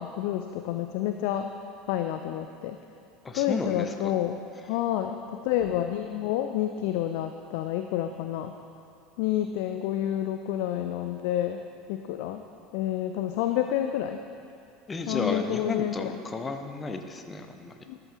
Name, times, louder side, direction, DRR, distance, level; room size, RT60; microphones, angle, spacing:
voice 1, 0.0-1.5 1.9-2.8 3.3-4.4 4.7-8.5 9.2-11.6 11.9-12.4 12.7-14.2 15.1-16.1 17.9-18.0, left 11 dB, 60° left, 7 dB, 0.4 m, -29 dB
voice 2, 3.2-4.1 14.9-17.7, left 3 dB, 20° left, 6 dB, 0.9 m, -33 dB
13.5 x 10.5 x 2.9 m, 2.5 s
figure-of-eight pair, 70°, 0 cm